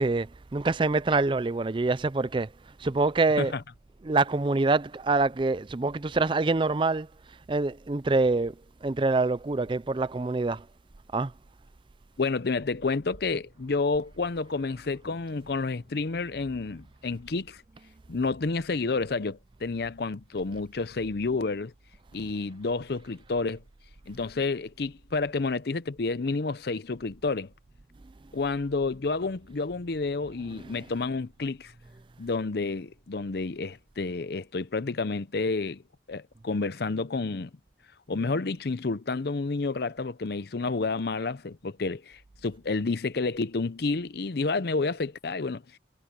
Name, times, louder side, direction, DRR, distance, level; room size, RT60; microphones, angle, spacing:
voice 1, 0.0-3.6 4.0-10.7 11.1-11.3 22.2-22.3 30.5-30.9, right 3 dB, 25° right, 0.4 m, -26 dB
voice 2, 12.2-17.6 18.1-21.7 22.1-23.6 24.1-27.5 28.3-31.7 32.2-35.8 36.1-37.5 38.1-45.6, left 3 dB, 60° left, 0.6 m, -30 dB
head